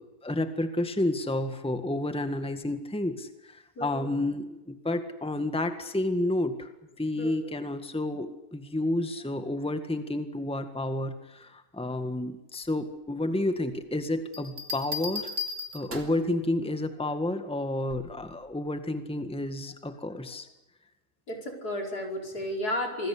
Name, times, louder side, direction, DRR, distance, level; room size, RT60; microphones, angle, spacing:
voice 1, 0.0-6.7 7.0-15.3 15.7-20.5, left 1 dB, 5° left, 8 dB, 1.7 m, -30 dB
Bell, 14.3-16.3 17.9-18.2, left 4 dB, 50° right, 3.7 m, -35 dB
voice 2, 21.3-23.1, left 1 dB, 85° left, 2 dB, 5.6 m, -32 dB
26.5 x 20.5 x 8.6 m, 0.91 s
omnidirectional pair, 1.6 m